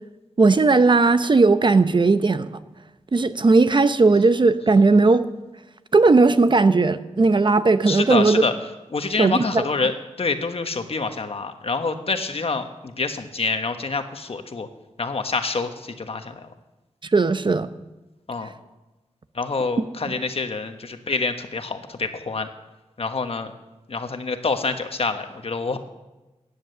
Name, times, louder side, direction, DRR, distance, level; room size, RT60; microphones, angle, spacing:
voice 1, 0.4-2.5 3.1-5.3 5.9-8.4 9.2-9.7 17.1-17.7 19.8-19.9, right 3 dB, 40° right, 11 dB, 0.7 m, -17 dB
voice 2, 7.9-8.5 8.9-9.9 10.2-14.7 15.0-15.7 16.0-16.5 18.3-18.5 19.3-22.5 23.0-23.5 23.9-25.8, left 4 dB, 55° left, 7 dB, 1.3 m, -26 dB
16.0 x 10.0 x 6.8 m, 1.1 s
wide cardioid pair, 95°, 12 cm